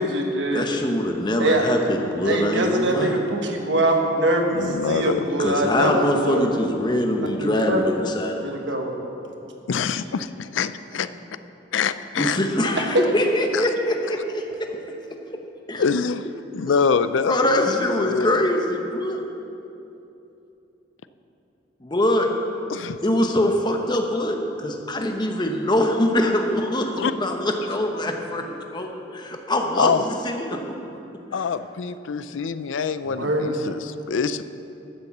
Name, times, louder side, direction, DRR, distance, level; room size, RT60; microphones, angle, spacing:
voice 1, 0.0-0.6 1.4-1.6 2.2-6.4 7.2-7.8 8.4-9.1 33.0-33.5, right 1 dB, 70° right, 2 dB, 1.4 m, -23 dB
voice 2, 0.5-3.2 5.4-8.6 12.2-14.7 15.7-15.8 17.3-19.2 21.8-22.3 23.0-28.4 28.7-29.9 30.2-30.6 31.4-31.5, left 1 dB, 25° left, 3 dB, 0.9 m, -23 dB
voice 3, 4.5-5.3 9.7-11.1 11.7-12.4 13.5-13.6 15.8-16.3 16.5-17.7 18.0-18.4 22.7-23.0 27.0-27.1 29.8-30.0 31.3-34.4, left 5 dB, 85° left, 13 dB, 0.4 m, -25 dB
12.5 x 6.6 x 7.3 m, 2.8 s
head